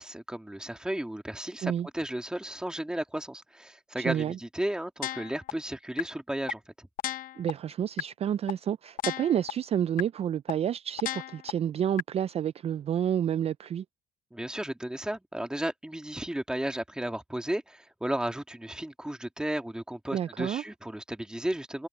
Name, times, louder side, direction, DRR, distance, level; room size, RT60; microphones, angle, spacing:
voice 1, 0.0-6.9 14.3-21.9, right 1 dB, 5° right, 2.2 m, -34 dB
voice 2, 4.0-4.4 7.4-13.8 20.1-20.6, right 9 dB, 40° right, 0.4 m, -29 dB
sound 1, 5.0-5.5 6.0-6.1 6.5-6.6 7.0-7.5 8.0-8.1 8.5-8.6 9.0-9.5 10.0-10.1 10.5-10.6 11.0-11.5 12.0-12.1, left 13 dB, 55° left, 0.7 m, -32 dB
cardioid pair, 110°, 17 cm